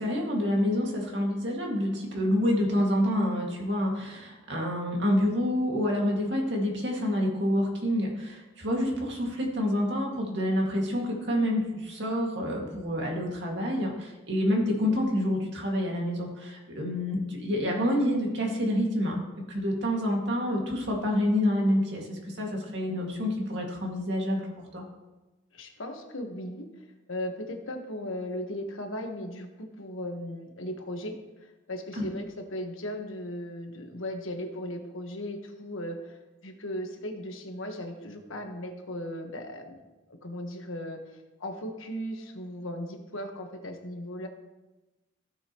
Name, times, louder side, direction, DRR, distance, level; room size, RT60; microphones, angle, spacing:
voice 1, 0.0-24.4 24.7-24.8 32.0-32.1, left 1 dB, 60° right, -1 dB, 2.2 m, -28 dB
voice 2, 25.5-26.7 27.1-31.1 31.4-36.2 36.4-39.8 40.1-41.0 41.4-44.3, left 1 dB, 90° left, 4 dB, 1.4 m, -37 dB
16.0 x 6.5 x 3.1 m, 1.1 s
head